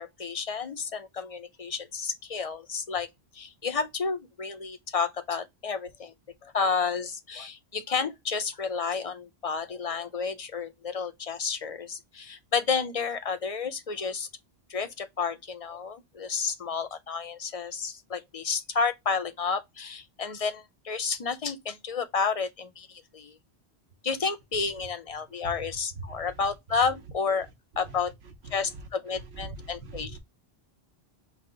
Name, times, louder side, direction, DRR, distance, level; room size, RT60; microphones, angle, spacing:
voice 1, 0.0-3.1 3.3-6.1 6.4-14.3 14.7-23.4 24.0-27.5 27.8-28.1 28.5-30.2, left 5 dB, 45° left, 0.5 m, -31 dB
voice 2, 25.3-26.5 27.8-30.2, right 3 dB, 80° right, 1.0 m, -43 dB
5.7 x 2.2 x 3.8 m
omnidirectional pair, 1.1 m